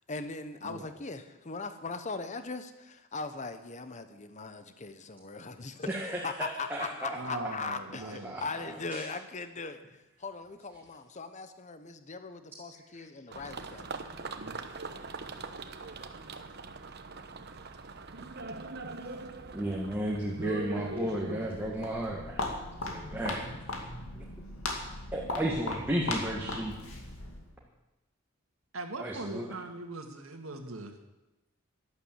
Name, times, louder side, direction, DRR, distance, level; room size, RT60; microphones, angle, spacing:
voice 1, 0.1-13.9, left 4 dB, 35° left, 10 dB, 1.0 m, -40 dB
voice 2, 5.9-7.7 8.0-9.1 19.5-22.4 22.8-23.5 24.1-24.2 25.1-26.7 29.0-29.6, right 1 dB, 10° right, -2 dB, 1.6 m, -34 dB
voice 3, 7.1-8.3 14.4-14.6 22.8-22.9 28.7-30.9, right 2 dB, 80° right, 5 dB, 1.9 m, -40 dB
sound 1, 13.3-21.7, right 3 dB, 50° right, 1.0 m, -41 dB
Walk footsteps, 21.4-27.5, left 2 dB, 85° left, 2.5 m, -38 dB
12.0 x 11.5 x 7.6 m, 0.99 s
head